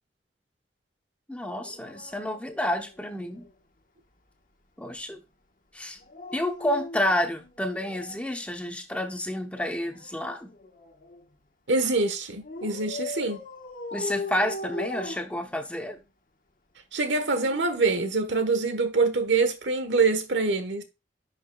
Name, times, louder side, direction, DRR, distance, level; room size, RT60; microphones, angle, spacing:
voice 1, 1.3-3.4 4.8-5.2 5.7-6.0 6.3-10.5 13.9-16.0, left 1 dB, 5° left, 0.9 m, -30 dB
Dog, 1.6-3.5 6.0-8.4 9.6-11.3 12.4-16.0 17.0-18.6 19.9-20.1, left 2 dB, 50° left, 1.3 m, -40 dB
voice 2, 11.7-13.4 16.9-20.8, right 3 dB, 85° right, 1.3 m, -25 dB
11.0 x 5.9 x 2.4 m
head